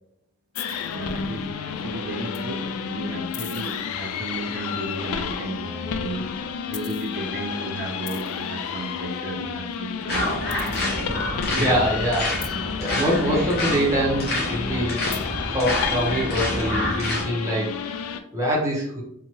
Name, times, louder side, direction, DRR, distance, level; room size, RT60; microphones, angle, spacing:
sound 1, 0.6-18.2, left 6 dB, 90° left, 0.3 m, -31 dB
voice 1, 0.9-6.3 6.7-10.3 11.5-11.9, right 1 dB, 50° right, 4 dB, 0.4 m, -34 dB
sound 2, 10.1-17.2, left 1 dB, 50° left, 0.7 m, -28 dB
voice 2, 11.5-15.0 15.5-19.0, equal, 15° right, -4 dB, 0.7 m, -25 dB
2.8 x 2.2 x 3.0 m, 0.73 s
head